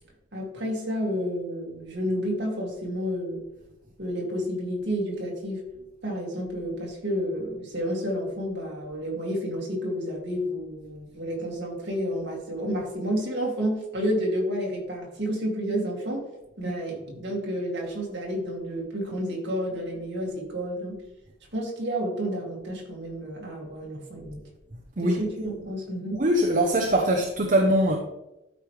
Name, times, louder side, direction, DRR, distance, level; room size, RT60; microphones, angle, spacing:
voice 1, 0.3-3.4 4.0-5.6 6.0-16.3 16.6-21.0 21.5-24.4 25.0-26.2, equal, 55° right, 2.4 m, -30 dB
voice 2, 26.1-28.0, right 1 dB, 40° right, 0.7 m, -22 dB
12.5 x 4.9 x 3.2 m
head